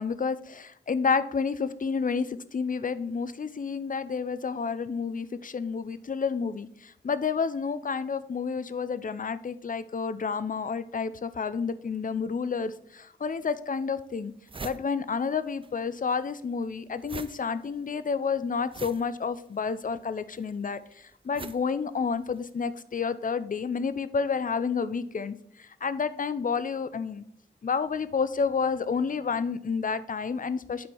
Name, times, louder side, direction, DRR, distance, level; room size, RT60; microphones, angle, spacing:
voice 1, 0.0-14.3 14.6-27.2 27.6-30.9, left 5 dB, 45° left, 14 dB, 0.5 m, -30 dB
sound 1, 13.2-13.3 13.9-14.0 14.2-15.7 16.0-22.5, right 4 dB, 25° right, 0.4 m, -44 dB
9.3 x 4.4 x 4.5 m, 0.68 s
wide cardioid pair, 95°, 19 cm